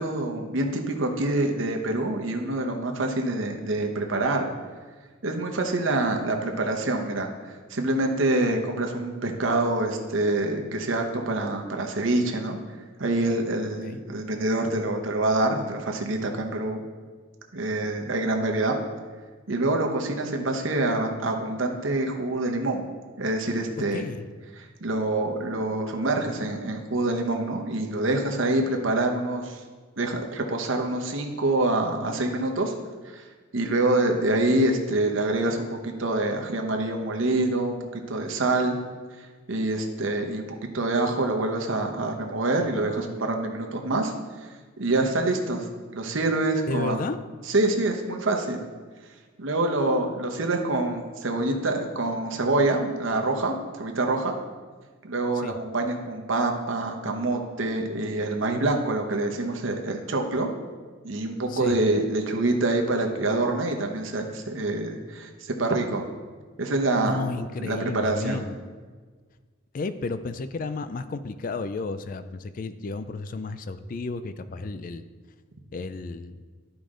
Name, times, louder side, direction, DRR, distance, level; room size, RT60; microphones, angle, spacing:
voice 1, 0.0-4.5 5.2-12.6 13.0-16.8 17.5-18.8 19.5-22.9 23.2-24.0 24.6-29.6 30.0-32.7 33.0-33.3 33.5-38.7 39.2-40.5 40.7-44.1 44.4-44.5 44.8-45.7 45.9-47.0 47.5-48.6 49.4-54.3 55.0-60.5 61.0-66.1 66.6-67.2 67.6-68.4, right 2 dB, 70° right, 3 dB, 0.9 m, -26 dB
voice 2, 23.9-24.3 46.7-47.2 55.4-55.6 61.5-61.8 67.0-68.5 69.7-75.0 75.7-76.4, left 3 dB, 40° left, 11 dB, 0.3 m, -32 dB
11.5 x 5.0 x 3.7 m, 1.5 s
head